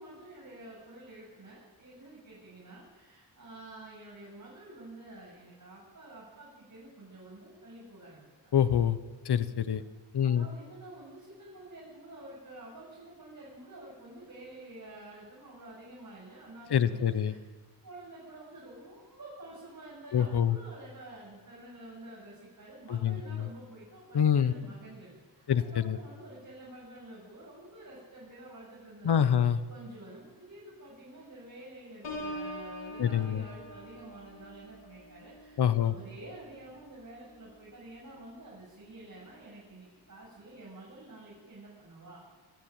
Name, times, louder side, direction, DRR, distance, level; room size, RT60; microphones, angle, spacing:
voice 1, 0.0-8.5 10.2-17.4 17.8-42.2, right 1 dB, 45° right, -5 dB, 7.9 m, -49 dB
voice 2, 8.5-9.0 9.2-9.8 10.1-10.5 16.7-17.3 20.1-20.6 22.9-23.5 24.1-24.5 25.5-26.0 29.0-29.6 33.0-33.4 35.6-35.9, left 9 dB, 65° left, 13 dB, 1.0 m, -26 dB
Piano, 32.0-37.7 38.1-38.5, equal, 90° left, 5.0 m, -44 dB
24.0 x 14.5 x 9.0 m, 1.4 s
wide cardioid pair, 90°, 43 cm